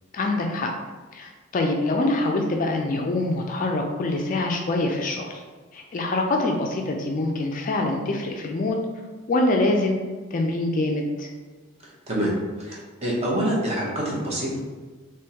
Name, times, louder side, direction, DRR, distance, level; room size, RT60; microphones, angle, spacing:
voice 1, 0.1-0.7 1.1-5.4 5.7-8.8 9.3-10.0 10.3-11.3, left 2 dB, 35° left, 2 dB, 0.3 m, -24 dB
voice 2, 11.8-14.6, right 1 dB, 30° right, -4 dB, 0.8 m, -26 dB
3.5 x 3.0 x 2.8 m, 1.4 s
head